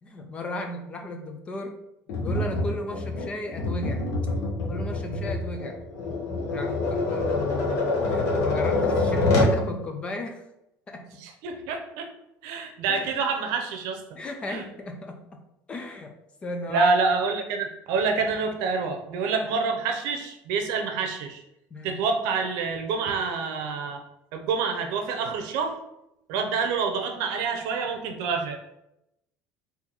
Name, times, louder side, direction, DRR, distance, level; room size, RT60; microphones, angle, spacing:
voice 1, 0.0-1.8 2.2-4.0 4.7-5.8 6.5-10.4 10.9-11.2 12.9-13.1 14.1-15.2 15.7-16.1 16.4-16.9 19.3-19.5 21.7-22.0, left 2 dB, 20° left, 4 dB, 0.4 m, -34 dB
Tap, 2.1-9.6, left 2 dB, 50° left, 0.9 m, -26 dB
voice 2, 11.2-12.1 12.4-14.0 14.5-14.6 16.7-21.4 21.8-24.0 24.3-25.8 26.3-28.6, right 4 dB, 70° right, 5 dB, 0.7 m, -27 dB
4.0 x 2.7 x 4.3 m, 0.85 s
cardioid pair, 180°, 6 cm